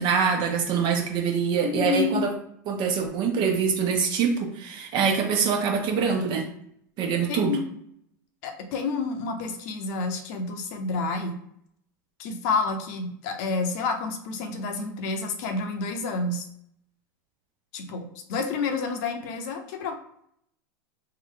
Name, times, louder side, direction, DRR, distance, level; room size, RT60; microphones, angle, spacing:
voice 1, 0.0-2.3 2.7-6.5 7.0-7.5, right 6 dB, 50° right, 2 dB, 1.1 m, -24 dB
voice 2, 1.6-2.2 7.3-7.7 8.4-11.4 12.2-16.5 17.7-20.0, left 4 dB, 60° left, 5 dB, 0.9 m, -29 dB
3.3 x 2.5 x 3.9 m, 0.70 s
hypercardioid pair, 100°, 10 cm